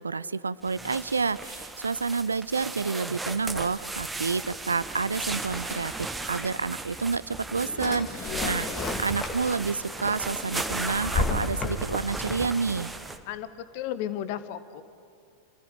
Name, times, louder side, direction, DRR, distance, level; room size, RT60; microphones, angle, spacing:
voice 1, 0.0-8.7 9.0-12.9, right 4 dB, 75° right, 18 dB, 0.5 m, -29 dB
sound 1, 0.6-13.2, right 3 dB, 10° right, 1.4 m, -36 dB
Drawer open or close, 7.1-9.7 10.1-12.2, left 3 dB, 25° left, 2.2 m, -32 dB
voice 2, 8.2-9.0 13.3-13.5 13.7-14.8, left 11 dB, 45° left, 14 dB, 1.1 m, -34 dB
28.0 x 15.0 x 9.3 m, 2.5 s
figure-of-eight pair, 90°, 0 cm